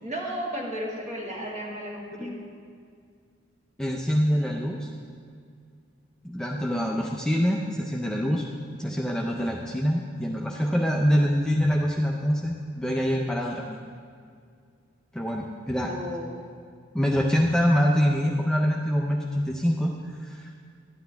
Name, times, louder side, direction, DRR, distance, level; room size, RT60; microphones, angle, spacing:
voice 1, 0.0-2.4 15.9-16.4, equal, 35° right, -2 dB, 1.5 m, -34 dB
voice 2, 3.8-4.9 6.2-8.4 8.8-13.8 15.1-15.9 16.9-20.5, equal, 5° left, -1 dB, 0.5 m, -25 dB
11.5 x 9.4 x 3.5 m, 2.2 s
head